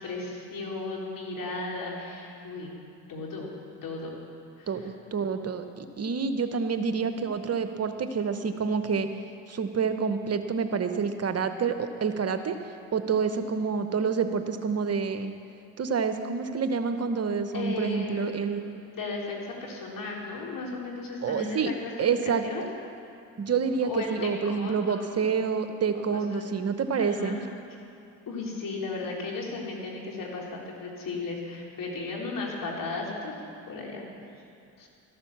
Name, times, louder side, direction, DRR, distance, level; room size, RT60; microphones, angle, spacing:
voice 1, 0.0-2.7 3.1-3.6 3.8-4.2 4.6-4.7 17.5-18.6 18.9-22.6 23.8-25.4 25.9-26.5 27.0-27.4 28.3-33.3 33.7-34.0 34.8-34.9, left 3 dB, 55° left, -2 dB, 3.8 m, -35 dB
voice 2, 5.1-9.1 9.5-12.6 12.9-15.3 15.8-18.8 21.2-21.7 22.0-22.4 23.4-27.4, right 5 dB, 40° right, 8 dB, 0.9 m, -28 dB
13.5 x 12.0 x 7.2 m, 2.6 s
supercardioid pair, 65°, 40 cm